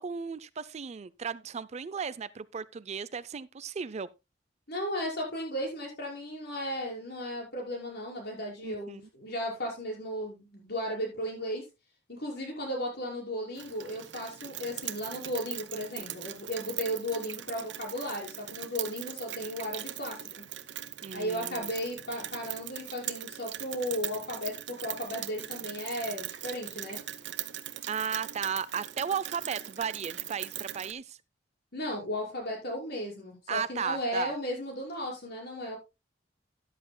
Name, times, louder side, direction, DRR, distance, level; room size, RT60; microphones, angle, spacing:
voice 1, 0.0-4.1 8.6-9.0 21.0-21.7 27.9-31.2 33.5-34.3, right 6 dB, 40° right, 0.4 m, -35 dB
voice 2, 4.7-11.6 12.1-20.2 21.1-24.5 24.8-27.0 31.7-35.8, equal, 60° left, 5.8 m, -35 dB
Rain, 13.6-30.9, right 12 dB, 70° right, 0.9 m, -40 dB
13.5 x 11.5 x 2.2 m
head